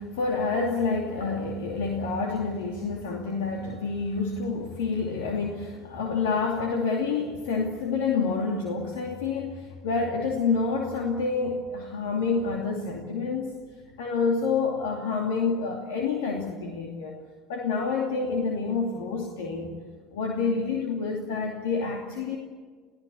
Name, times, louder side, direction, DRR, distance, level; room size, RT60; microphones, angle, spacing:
voice 1, 0.0-13.6 14.0-17.2 17.5-19.7 20.1-22.4, left 4 dB, 70° left, 1 dB, 2.7 m, -28 dB
30.0 x 17.0 x 8.5 m, 1.6 s
hypercardioid pair, 70°, 0 cm